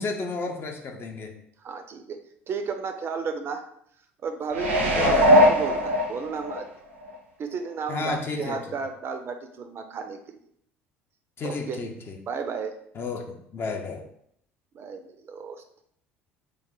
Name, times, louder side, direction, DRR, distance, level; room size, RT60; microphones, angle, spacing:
voice 1, 0.0-1.3 5.0-5.3 7.9-8.6 11.4-12.2 12.9-14.0, left 4 dB, 35° left, 4 dB, 0.6 m, -32 dB
voice 2, 1.6-2.2 2.5-3.6 4.2-6.6 7.4-10.4 11.4-11.8 12.3-12.7 14.7-15.6, right 5 dB, 40° right, 7 dB, 0.4 m, -33 dB
sound 1, 4.5-6.6 7.1-7.2, equal, 85° right, 0.6 m, -20 dB
3.1 x 2.1 x 3.6 m, 0.68 s
figure-of-eight pair, 60°, 6 cm